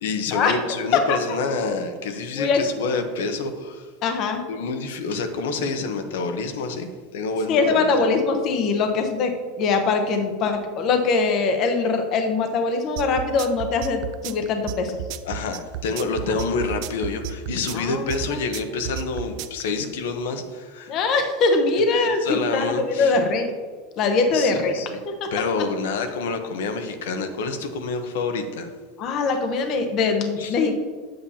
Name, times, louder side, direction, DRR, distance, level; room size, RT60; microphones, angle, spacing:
voice 1, 0.0-3.9 4.5-7.8 15.2-21.0 22.2-23.1 24.3-25.0 25.3-28.7 30.4-30.5, left 4 dB, 85° left, 7 dB, 0.9 m, -28 dB
voice 2, 4.0-4.4 7.5-15.0 17.7-18.4 20.9-23.5 24.0-24.8 25.1-25.3 29.0-30.7, left 4 dB, 35° left, 6 dB, 0.8 m, -22 dB
sound 1, 13.0-19.6, right 11 dB, 45° right, 0.4 m, -32 dB
8.5 x 7.8 x 2.8 m, 1.5 s
supercardioid pair, 165°, 0 cm